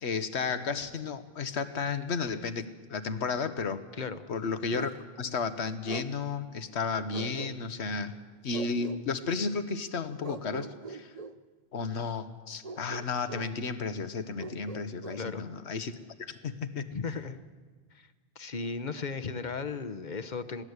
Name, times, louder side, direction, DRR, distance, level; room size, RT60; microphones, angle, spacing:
voice 1, 0.0-3.8 4.3-4.9 5.2-8.2 8.4-11.1 11.7-15.9 16.3-16.8, left 5 dB, 85° left, 11 dB, 1.4 m, -33 dB
voice 2, 3.9-4.2 15.2-15.5 16.9-17.4 17.9-18.1 18.4-20.6, left 4 dB, 45° left, 12 dB, 1.0 m, -36 dB
Bark, 4.7-5.0 5.9-6.1 7.1-7.9 8.5-9.0 10.2-11.4 12.6-13.5 14.4-15.2, right 4 dB, 40° right, 0.8 m, -41 dB
22.0 x 16.5 x 8.1 m, 1.4 s
omnidirectional pair, 1.1 m